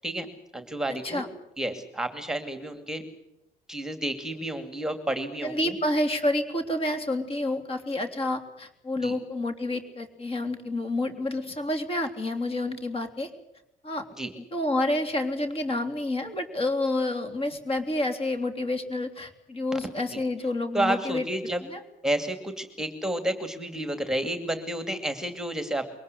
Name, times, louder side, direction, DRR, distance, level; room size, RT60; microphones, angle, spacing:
voice 1, 0.0-1.2 1.6-3.0 3.7-5.8 9.0-9.1 14.2-14.3 19.7-20.2 20.7-21.6 22.0-25.8, right 1 dB, 5° right, 8 dB, 2.5 m, -31 dB
voice 2, 0.9-1.3 5.4-13.3 13.8-14.1 14.4-21.2 21.7-21.8, left 1 dB, 35° left, 7 dB, 3.3 m, -29 dB
23.0 x 18.5 x 8.4 m, 0.86 s
cardioid pair, 110°, 17 cm